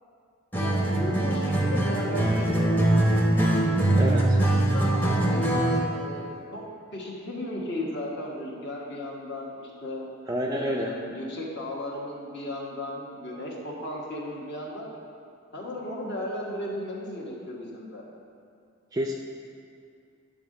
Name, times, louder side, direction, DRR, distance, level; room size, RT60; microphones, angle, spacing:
voice 1, 0.5-2.9 4.4-6.6 6.9-10.0 10.5-14.9 15.5-18.0, left 1 dB, 50° left, -3 dB, 1.3 m, -35 dB
Acoustic guitar, 0.5-5.9, right 1 dB, 10° left, 0.7 m, -23 dB
voice 2, 4.0-4.4 10.3-11.0 18.9-19.1, equal, 15° right, -1 dB, 0.3 m, -28 dB
10.5 x 3.7 x 6.4 m, 2.3 s
head